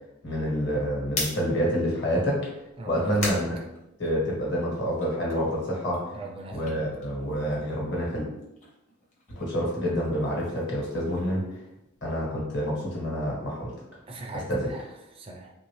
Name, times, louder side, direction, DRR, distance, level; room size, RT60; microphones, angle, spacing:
voice 1, 0.2-2.4 2.9-3.5 4.0-6.0 6.5-8.3 9.3-11.4 12.0-13.7 14.5-14.7, equal, 55° left, -3 dB, 1.2 m, -27 dB
sound 1, 0.9-4.5 4.9-7.8 8.1-12.2, left 2 dB, 35° left, 0.8 m, -40 dB
voice 2, 2.8-3.4 6.1-6.8 14.1-15.5, right 2 dB, 25° right, 1 dB, 0.4 m, -41 dB
3.0 x 2.6 x 3.1 m, 0.88 s
head